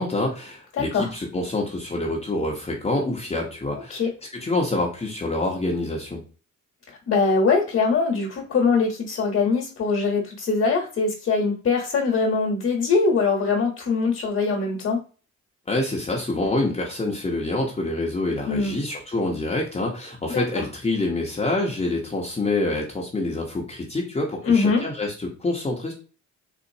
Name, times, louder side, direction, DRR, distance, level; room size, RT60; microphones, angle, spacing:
voice 1, 0.0-4.0 4.3-6.2 15.7-25.9, left 2 dB, 20° left, -2 dB, 0.8 m, -26 dB
voice 2, 0.8-1.1 3.9-4.1 6.9-15.0 18.5-18.8 20.3-20.6 24.4-24.8, left 4 dB, 50° left, -1 dB, 1.0 m, -22 dB
4.0 x 2.4 x 2.7 m, 0.37 s
cardioid pair, 90°, 30 cm